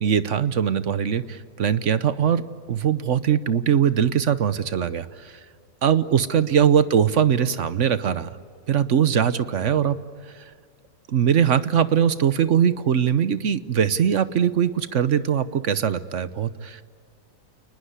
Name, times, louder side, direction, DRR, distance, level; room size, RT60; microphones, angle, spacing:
voice 1, 0.0-2.4 2.7-5.4 5.8-8.3 8.7-10.0 11.1-16.8, right 8 dB, 55° right, 14 dB, 1.0 m, -21 dB
29.0 x 20.0 x 9.5 m, 2.1 s
omnidirectional pair, 1.8 m